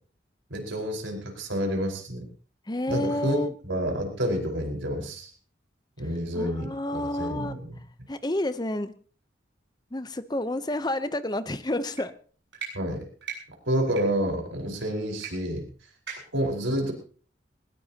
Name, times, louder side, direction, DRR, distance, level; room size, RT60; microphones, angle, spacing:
voice 1, 0.5-2.3 2.9-5.3 6.0-7.8 12.7-13.1 13.7-15.6 16.3-16.9, equal, 90° right, 2 dB, 4.8 m, -29 dB
voice 2, 2.7-3.5 6.3-7.6 8.1-8.9 9.9-12.1, left 1 dB, 20° left, 12 dB, 0.8 m, -30 dB
sound 1, 11.9-12.0 12.5-12.7 13.2-13.4 13.9-14.0 15.2-15.3 15.6-15.7 16.1-16.4, right 6 dB, 65° right, 7.6 m, -37 dB
20.0 x 19.5 x 2.9 m, 0.43 s
head